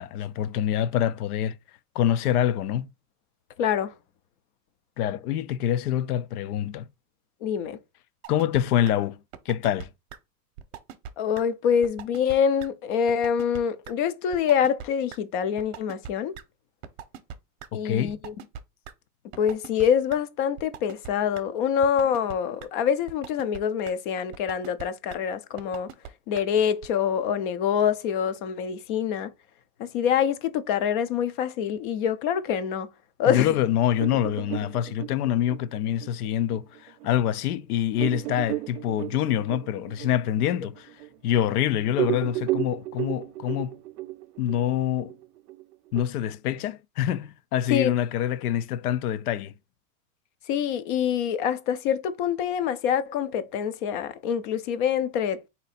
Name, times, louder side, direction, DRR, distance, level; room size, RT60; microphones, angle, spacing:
voice 1, 0.0-1.6 1.9-2.9 5.0-6.9 8.3-9.2 9.5-9.9 17.7-18.2 33.3-40.9 41.2-43.8 44.4-45.1 45.9-49.5, left 11 dB, 85° left, 0.6 m, -26 dB
voice 2, 3.6-3.9 7.4-7.8 11.2-16.3 17.7-18.3 19.4-25.9 26.3-29.3 29.8-32.9 33.2-33.5 47.7-47.9 50.5-55.5, left 8 dB, 40° left, 0.4 m, -25 dB
sound 1, 8.2-8.6 8.9-9.0 9.3-9.8 10.1-10.2 10.6-11.1 11.4-11.5 11.8-12.3 12.6-12.7 13.1-13.6 13.8-13.9 14.3-14.9 15.1-15.2 15.6-16.1 16.3-16.4 16.8-17.7 18.1-18.9 19.3-19.8 20.1-20.2 20.6-21.1 21.4-21.5 21.8-22.3 22.6-22.7 23.1-23.6 23.9-24.0 24.3-24.8 25.1-25.2 25.6-26.1 26.4-26.5 26.8-26.9, right 9 dB, 45° right, 0.7 m, -40 dB
sound 2, 34.0-37.1 37.5-37.6 38.0-41.6 41.9-46.0, right 17 dB, 85° right, 0.5 m, -33 dB
4.1 x 2.8 x 4.1 m
supercardioid pair, 150°, 44 cm